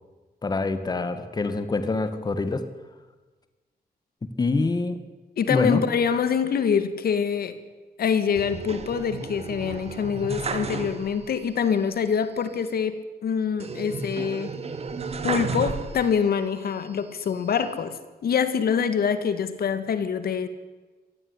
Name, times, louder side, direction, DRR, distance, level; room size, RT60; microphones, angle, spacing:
voice 1, 0.4-2.7 4.2-5.0 5.5-5.8, left 3 dB, 25° left, 10 dB, 1.9 m, -25 dB
voice 2, 5.4-7.5 8.0-13.0 13.2-14.5 15.2-18.0 18.2-20.5, left 7 dB, 65° left, 11 dB, 2.1 m, -25 dB
sound 1, 8.4-11.4 11.7-11.8 13.6-16.3 16.9-17.7, right 4 dB, 40° right, 2.3 m, -33 dB
25.5 x 19.5 x 10.0 m, 1.3 s
wide cardioid pair, 175°, 17 cm